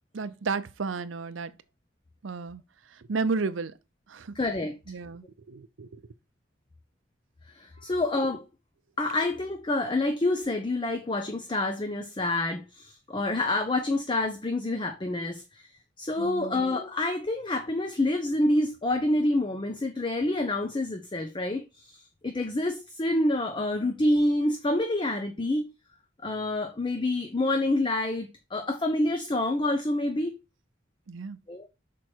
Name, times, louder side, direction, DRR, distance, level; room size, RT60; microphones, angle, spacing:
voice 1, 0.1-1.5 2.2-2.6 2.9-3.7 4.1-4.4 4.9-6.0 16.2-16.5 31.1-31.4, right 4 dB, 70° right, 0.6 m, -32 dB
voice 2, 4.4-4.8 7.5-8.4 9.0-15.7 16.0-25.7 26.2-30.4 31.5-31.7, left 2 dB, 25° left, 0.6 m, -27 dB
6.3 x 4.5 x 4.4 m
head